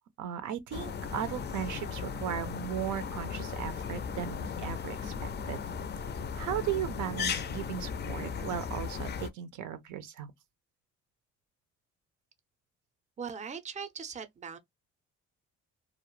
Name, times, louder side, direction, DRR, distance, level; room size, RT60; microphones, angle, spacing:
voice 1, 0.2-5.6 6.3-10.3, right 10 dB, 80° right, 0.5 m, -37 dB
sound 1, 0.7-9.3, left 6 dB, 35° left, 0.4 m, -36 dB
voice 2, 13.2-14.6, right 6 dB, 25° right, 0.5 m, -40 dB
2.4 x 2.0 x 3.0 m
cardioid pair, 90°, 30 cm